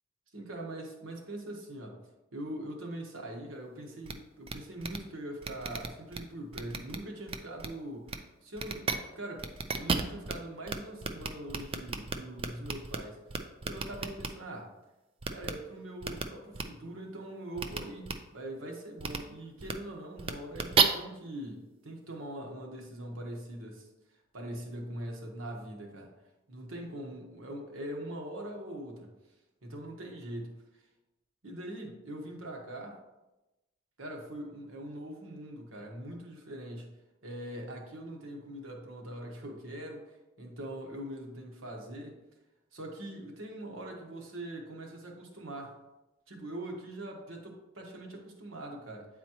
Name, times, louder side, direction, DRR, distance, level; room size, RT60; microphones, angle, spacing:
voice 1, 0.3-2.0 2.3-9.5 9.7-13.2 13.6-14.7 15.3-23.9 24.3-26.1 26.5-29.1 29.6-30.8 31.4-33.0 34.0-36.9 37.2-42.2 42.7-45.7 46.3-49.1, right 1 dB, 90° right, 1 dB, 1.2 m, -42 dB
sound 1, 4.1-4.2 4.5-4.6 4.8-5.0 5.4-6.2 6.5-7.0 7.3-7.7 8.1-8.2 8.6-9.0 9.4-10.3 10.7-10.8 11.0-13.0 13.3-14.3 15.2-15.5 16.0-16.2 16.5-16.6 17.6-17.8 18.0-18.1 19.0-19.2 19.6-19.7 20.2-20.8, right 5 dB, 30° right, 0.4 m, -31 dB
8.5 x 4.1 x 2.9 m, 1.0 s
head